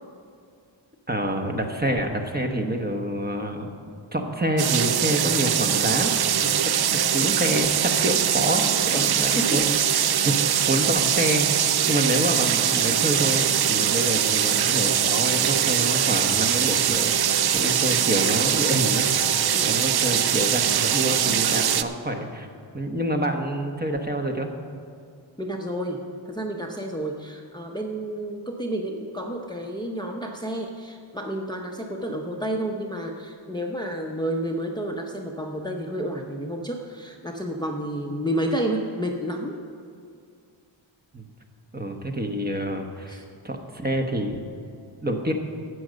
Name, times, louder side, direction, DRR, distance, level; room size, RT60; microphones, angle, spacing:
voice 1, 1.1-3.7 4.1-11.5 11.9-17.1 17.5-19.1 19.6-22.5 22.7-24.5 41.1-41.3 41.7-43.2 43.4-44.4 45.0-45.3, right 1 dB, 20° right, 3 dB, 1.0 m, -27 dB
sound 1, 4.6-21.8, right 9 dB, 55° right, 0.5 m, -22 dB
voice 2, 8.9-9.5 17.6-17.8 19.5-19.7 25.4-39.6 43.1-43.3, right 1 dB, 10° left, 1 dB, 0.7 m, -30 dB
12.5 x 7.8 x 6.4 m, 2.3 s
wide cardioid pair, 105°, 47 cm